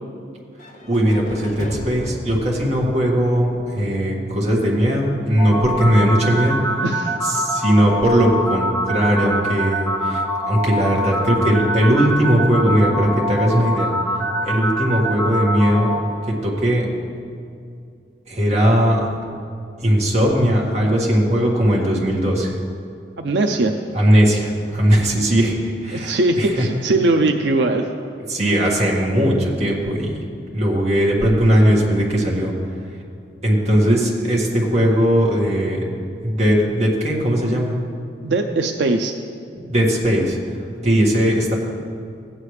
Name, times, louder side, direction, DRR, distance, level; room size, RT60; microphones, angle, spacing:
sound 1, 0.6-4.5, left 1 dB, 45° left, 0.9 m, -36 dB
voice 1, 0.8-6.6 7.2-13.9 14.4-15.9 16.3-16.8 18.3-19.1 19.8-22.5 23.9-25.5 25.8-26.5 28.3-30.1 30.5-32.5 33.4-35.9 36.2-37.7 39.6-40.4 40.8-41.6, equal, 40° right, -3 dB, 1.8 m, -18 dB
sound 2, 5.4-16.0, equal, 10° left, 2.1 m, -24 dB
voice 2, 6.8-7.2 23.2-23.8 25.9-27.9 38.2-39.1, right 2 dB, 80° right, 5 dB, 0.5 m, -20 dB
16.0 x 8.8 x 3.3 m, 2.4 s
head